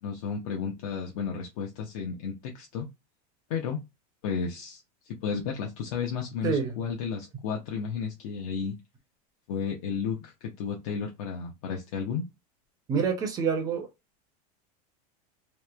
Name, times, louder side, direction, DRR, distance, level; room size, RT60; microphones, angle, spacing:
voice 1, 0.0-2.9 3.5-3.8 4.2-8.7 9.5-12.2, left 6 dB, 60° left, 0.6 m, -33 dB
voice 2, 6.4-6.8 12.9-13.9, right 6 dB, 20° right, 0.5 m, -27 dB
2.9 x 2.0 x 2.2 m
supercardioid pair, 165°, 20 cm